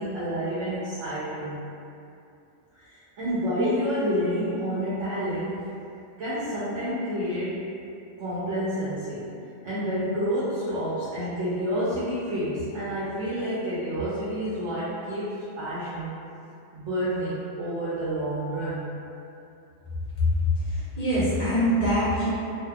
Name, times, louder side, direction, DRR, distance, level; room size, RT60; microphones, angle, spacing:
voice 1, 0.0-1.6 2.7-5.6 6.2-7.7 8.2-9.3 9.6-16.1 16.7-18.9, equal, 75° right, -11 dB, 0.9 m, -29 dB
voice 2, 20.7-22.3, equal, 35° left, -12 dB, 0.7 m, -24 dB
2.7 x 2.2 x 2.2 m, 2.6 s
omnidirectional pair, 1.3 m